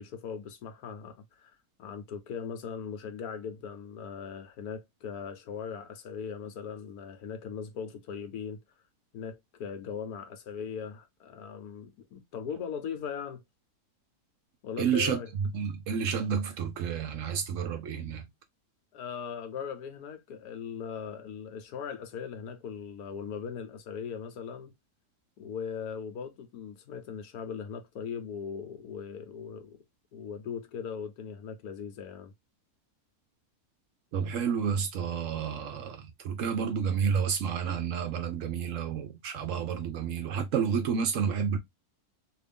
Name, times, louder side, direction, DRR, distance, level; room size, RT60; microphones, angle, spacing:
voice 1, 0.0-8.6 9.1-13.4 14.6-15.3 17.9-18.0 18.9-24.7 25.4-29.8 30.1-32.3, left 7 dB, 80° left, 1.3 m, -39 dB
voice 2, 14.8-18.3 34.1-41.6, right 7 dB, 65° right, 0.8 m, -30 dB
2.9 x 2.5 x 3.4 m
omnidirectional pair, 1.6 m